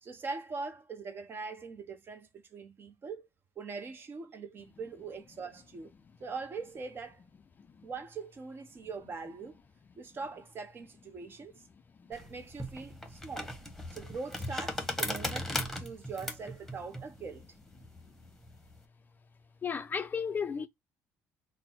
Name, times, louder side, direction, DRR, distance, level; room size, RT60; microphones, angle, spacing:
voice 1, 0.0-3.3 3.6-5.9 6.2-7.2 7.8-9.6 10.0-11.6 12.1-13.6 13.9-17.4, right 4 dB, 40° right, 0.7 m, -42 dB
sound 1, 12.1-18.8, left 1 dB, ahead, 1.0 m, -38 dB
voice 2, 19.6-20.7, left 6 dB, 30° left, 0.4 m, -33 dB
4.0 x 2.0 x 4.1 m
cardioid pair, 100°, 6 cm